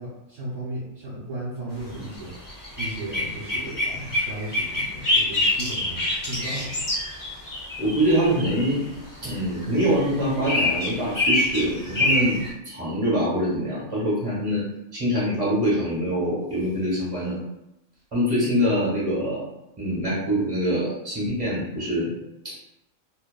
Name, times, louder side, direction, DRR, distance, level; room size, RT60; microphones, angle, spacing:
voice 1, 0.0-6.9, right 1 dB, 65° right, -10 dB, 1.3 m, -35 dB
sound 1, 2.0-8.7 9.6-12.5, left 1 dB, 25° left, 0.4 m, -26 dB
voice 2, 7.8-8.8 9.2-12.4 12.6-14.6 14.9-17.4 18.1-19.4 19.8-22.1 22.4-22.6, equal, 25° right, -8 dB, 1.1 m, -24 dB
2.8 x 2.3 x 2.2 m, 0.89 s
omnidirectional pair, 1.4 m